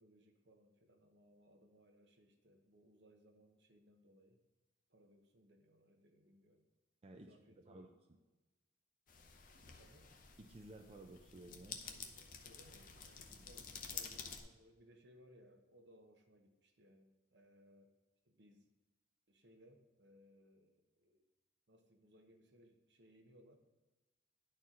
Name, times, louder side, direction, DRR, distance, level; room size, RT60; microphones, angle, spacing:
voice 1, 0.0-4.4 4.9-6.7 7.1-7.9 9.7-10.1 11.8-17.9 18.2-18.7 19.3-21.3 21.7-23.6, equal, 70° right, 5 dB, 0.9 m, -66 dB
voice 2, 7.0-8.2 10.4-11.8 13.3-13.5, right 2 dB, 35° right, 3 dB, 0.4 m, -56 dB
sound 1, 9.1-14.4, left 6 dB, 50° left, 0.7 m, -51 dB
10.5 x 4.4 x 3.7 m, 1.1 s
head